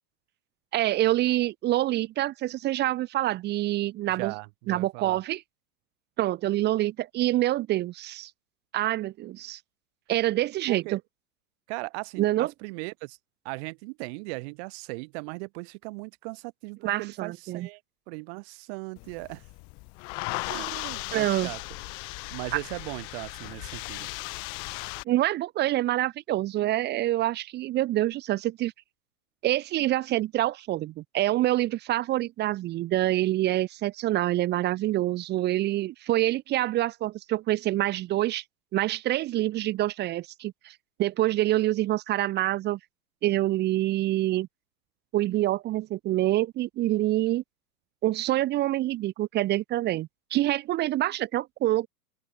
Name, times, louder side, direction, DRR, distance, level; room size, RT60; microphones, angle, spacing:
voice 1, 0.7-4.3 4.7-5.4 6.2-8.3 8.7-9.6 10.1-11.0 12.2-12.5 16.8-17.7 21.1-21.5 25.1-28.7 29.4-38.4 38.7-42.8 43.2-44.5 45.1-47.4 48.0-51.9, right 15 dB, 20° right, 1.1 m, -26 dB
voice 2, 4.1-5.2 10.7-11.0 11.7-13.2 13.4-17.8 18.1-19.4 20.5-21.6 22.3-24.1, right 30 dB, 40° right, 3.7 m, -38 dB
sound 1, 19.0-25.0, left 31 dB, 10° left, 0.4 m, -37 dB
open air
hypercardioid pair, 130°, 47 cm